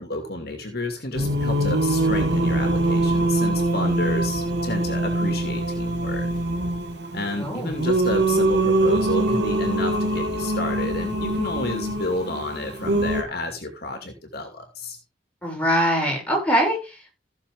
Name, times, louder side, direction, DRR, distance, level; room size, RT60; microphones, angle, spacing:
voice 1, 0.0-6.3 7.1-15.0, left 2 dB, 60° left, 5 dB, 2.5 m, -31 dB
Singing, 1.1-13.2, right 1 dB, 70° right, 2.0 m, -23 dB
voice 2, 7.4-7.8 15.4-17.1, equal, 10° left, -1 dB, 6.5 m, -23 dB
15.5 x 6.8 x 3.7 m, 0.28 s
head